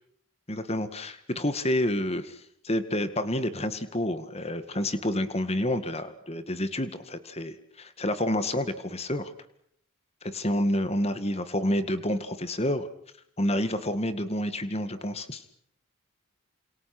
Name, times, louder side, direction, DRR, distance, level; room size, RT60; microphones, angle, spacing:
voice 1, 0.5-2.4 2.6-9.3 10.2-12.9 13.4-15.4, left 1 dB, 25° left, 11 dB, 2.0 m, -29 dB
29.5 x 27.0 x 6.2 m, 0.67 s
head